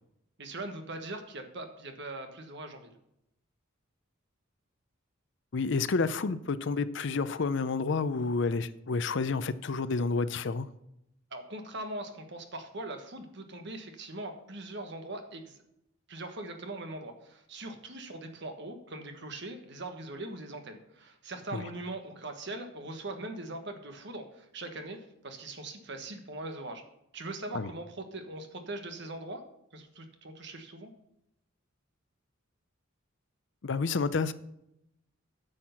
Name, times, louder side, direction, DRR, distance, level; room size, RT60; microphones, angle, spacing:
voice 1, 0.4-2.9 11.3-15.6 16.1-25.0 25.2-26.8 27.1-29.4 29.7-30.9, right 2 dB, 55° right, 1.4 m, -41 dB
voice 2, 5.5-10.7 21.5-21.6 27.5-27.7 33.6-34.3, left 4 dB, 60° left, 0.5 m, -29 dB
10.0 x 6.4 x 5.8 m
head